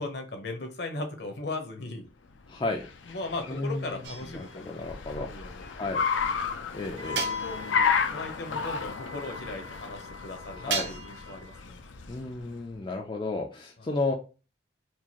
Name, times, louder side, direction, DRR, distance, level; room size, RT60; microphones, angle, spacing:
voice 1, 0.0-2.0 3.0-4.7 5.1-5.9 6.9-7.6 8.1-11.8 13.8-14.0, left 2 dB, 60° left, 5 dB, 0.9 m, -38 dB
Car, 2.4-12.6, left 6 dB, 85° left, 0.5 m, -33 dB
voice 2, 2.5-2.8 3.5-4.0 4.3-5.3 5.8-6.0 6.7-7.3 10.6-10.9 12.1-14.1, left 2 dB, 25° left, 1 dB, 0.4 m, -32 dB
sound 1, 4.0-4.7 7.2-7.9 10.7-11.4, right 6 dB, 65° right, 0.7 m, -35 dB
Wind instrument woodwind instrument, 7.0-11.6, left 5 dB, 40° right, 1.0 m, -42 dB
4.6 x 2.5 x 2.9 m, 0.32 s
head